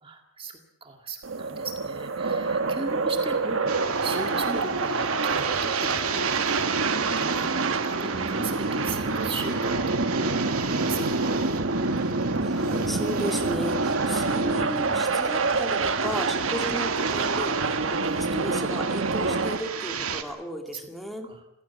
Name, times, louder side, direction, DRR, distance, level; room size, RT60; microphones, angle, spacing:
voice 1, 0.0-11.4 20.2-20.4 20.7-20.8 21.2-21.4, right 3 dB, 25° right, 4 dB, 2.0 m, -38 dB
sound 1, 1.2-19.6, right 3 dB, 60° right, 1.4 m, -27 dB
sound 2, 3.7-20.2, right 4 dB, 80° right, 2.2 m, -32 dB
voice 2, 12.0-21.3, equal, ahead, 4 dB, 2.4 m, -35 dB
28.0 x 16.0 x 8.3 m, 0.90 s
head